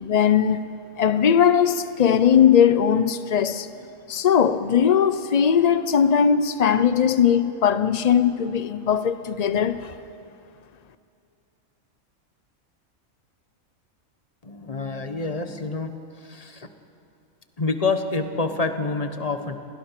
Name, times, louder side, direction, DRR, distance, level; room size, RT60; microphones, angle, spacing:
voice 1, 0.0-0.6 1.0-3.7 4.1-9.9, left 8 dB, 65° left, 0.4 m, -19 dB
voice 2, 14.4-15.9 16.2-16.7 17.6-19.6, left 3 dB, 30° left, 1.3 m, -27 dB
29.0 x 20.5 x 5.9 m
omnidirectional pair, 1.4 m